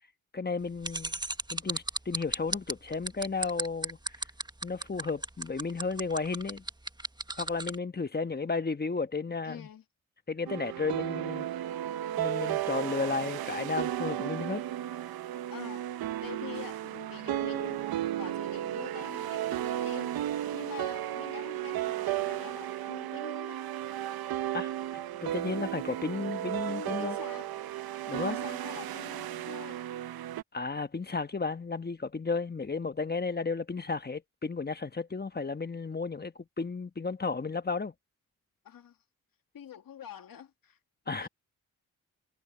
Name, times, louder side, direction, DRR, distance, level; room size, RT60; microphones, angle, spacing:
voice 1, 0.3-1.1 1.5-4.0 4.6-6.6 7.4-9.7 10.3-11.5 12.2-14.6 24.5-24.7 25.2-27.2 28.1-28.4 30.5-37.9 41.1-41.3, left 4 dB, 25° left, 1.3 m, -33 dB
sound 1, 0.8-7.7, right 2 dB, 10° right, 1.4 m, -34 dB
voice 2, 9.4-9.8 10.8-10.9 15.5-17.8 18.2-20.1 20.5-23.6 26.7-27.5 28.3-29.8 38.6-39.0 39.5-40.8 41.1-41.3, left 9 dB, 70° left, 2.3 m, -46 dB
sound 2, 10.5-30.4, right 12 dB, 85° right, 1.0 m, -34 dB
supercardioid pair, 55°, 36 cm